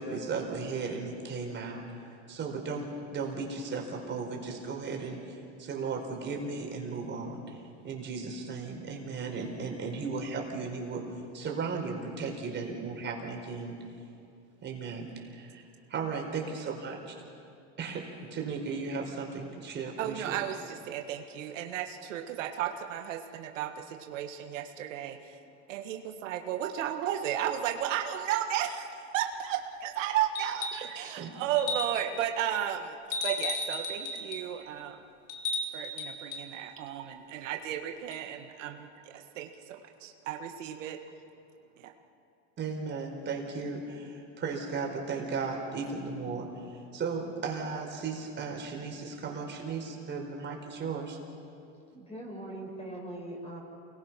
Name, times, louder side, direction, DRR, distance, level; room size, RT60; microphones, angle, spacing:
voice 1, 0.0-2.0 2.3-11.1 11.3-13.8 14.6-17.1 17.8-18.1 18.3-20.4 31.2-31.3 42.6-46.6 46.9-51.2, right 4 dB, 30° right, 1 dB, 4.5 m, -36 dB
voice 2, 20.0-25.4 25.7-28.9 29.1-33.0 33.2-35.0 35.7-41.0 41.8-41.9, right 10 dB, 80° right, 4 dB, 1.8 m, -34 dB
sound 1, 30.4-30.9 31.6-32.2 33.1-34.5 35.3-36.5 38.1-38.2, left 2 dB, 80° left, 3.0 m, -34 dB
voice 3, 51.9-53.6, right 1 dB, 15° left, -1 dB, 6.5 m, -41 dB
29.0 x 21.0 x 5.9 m, 2.5 s
supercardioid pair, 125°, 37 cm